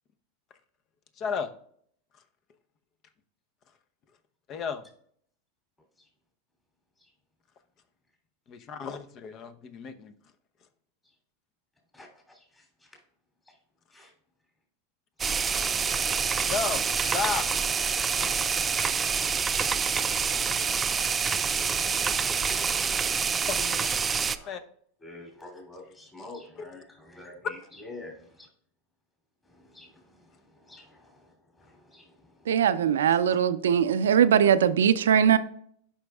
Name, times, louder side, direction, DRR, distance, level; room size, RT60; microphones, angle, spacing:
voice 1, 1.2-1.5 4.5-4.8 8.5-10.1 15.8-16.0 16.5-17.5 23.5-23.9 24.5-24.6 26.2-26.3 26.6-26.7, left 6 dB, 40° left, 0.8 m, -33 dB
voice 2, 11.9-13.0 13.5-13.6 13.9-14.1 17.9-18.0 22.4-23.1 24.2-24.5 25.0-28.5 29.4-32.6 35.3-35.4, left 2 dB, 20° left, 2.8 m, -48 dB
sound 1, 15.2-24.4, right 6 dB, 20° right, 0.4 m, -27 dB
voice 3, 32.5-35.4, right 8 dB, 85° right, 0.5 m, -21 dB
11.5 x 5.2 x 2.3 m
hypercardioid pair, 100°, 0 cm